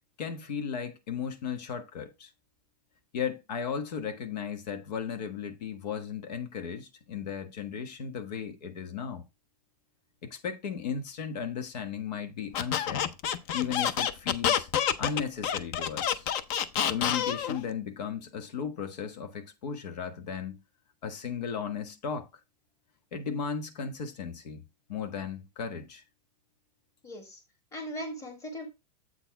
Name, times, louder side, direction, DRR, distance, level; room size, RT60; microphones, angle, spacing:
voice 1, 0.2-2.3 3.1-9.2 10.2-13.1 13.5-14.7 15.0-16.3 16.9-20.6 21.0-22.3 23.1-26.0, left 7 dB, 75° left, 1.3 m, -35 dB
Squeak, 12.5-17.6, left 9 dB, 35° left, 0.5 m, -28 dB
voice 2, 27.0-27.4 27.7-28.7, equal, 15° left, 1.8 m, -38 dB
8.0 x 4.2 x 4.6 m
supercardioid pair, 155°, 21 cm